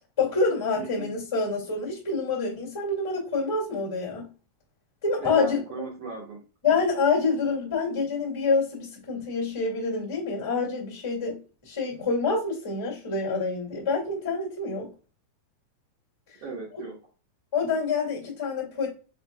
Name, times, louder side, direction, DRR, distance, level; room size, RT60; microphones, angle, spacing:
voice 1, 0.2-4.3 5.0-5.6 6.6-11.4 11.6-14.9 17.5-18.9, left 4 dB, 15° left, -3 dB, 1.1 m, -27 dB
voice 2, 0.8-1.1 5.2-6.4 16.4-17.0, right 4 dB, 80° right, -2 dB, 1.4 m, -37 dB
5.9 x 3.6 x 2.3 m, 0.34 s
omnidirectional pair, 4.3 m